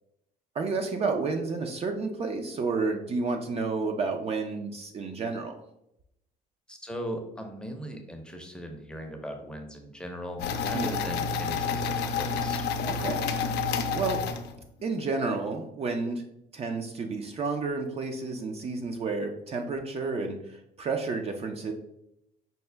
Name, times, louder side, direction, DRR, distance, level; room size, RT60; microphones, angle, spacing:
voice 1, 0.5-5.5 10.7-11.0 12.9-13.2 13.9-14.2 14.8-16.2 16.5-21.7, right 4 dB, 35° right, 4 dB, 0.4 m, -31 dB
voice 2, 6.7-12.6, equal, 5° left, 3 dB, 0.6 m, -39 dB
sound 1, 10.4-14.8, left 5 dB, 80° left, 0.5 m, -29 dB
5.4 x 2.1 x 3.3 m, 0.81 s
cardioid pair, 110°, 17 cm